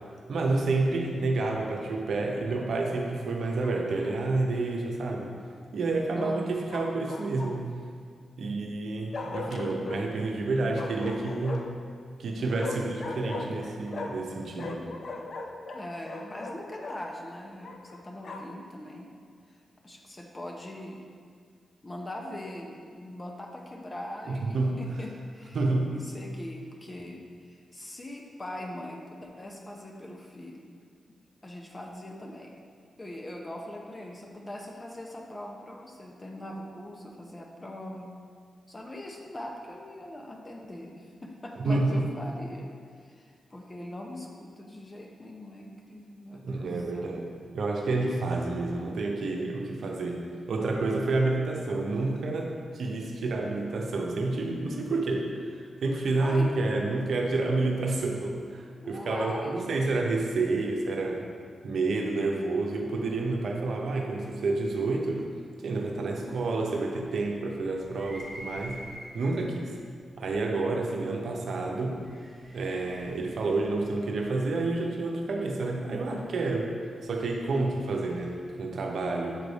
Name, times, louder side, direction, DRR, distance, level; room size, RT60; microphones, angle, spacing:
voice 1, 0.3-5.3 5.7-7.6 8.4-11.6 12.2-14.8 24.3-24.8 25.5-25.9 41.6-42.1 46.3-47.3 47.5-50.2 50.5-61.3 61.6-65.2 65.6-68.8 69.1-69.8 70.2-72.0 72.5-76.7 77.0-79.4, right 3 dB, 75° right, 1 dB, 0.8 m, -29 dB
Bark, 3.6-4.2 6.7-7.8 9.1-10.0 10.7-11.8 12.6-14.3 14.6-17.0 17.6-18.6, left 3 dB, 65° left, 0.5 m, -38 dB
voice 2, 6.1-6.6 15.7-19.1 19.5-21.0 21.8-25.6 25.9-30.7 31.4-32.6 33.0-38.1 38.7-42.7 43.0-47.1 56.1-56.5 58.8-59.9 66.2-66.4, left 1 dB, 30° left, 0 dB, 0.8 m, -41 dB
sound 1, 67.8-69.5 70.3-70.4 71.8-74.7 76.7-78.5, equal, 5° right, 1.4 m, -47 dB
7.2 x 3.3 x 4.1 m, 2.1 s
cardioid pair, 50°, 0 cm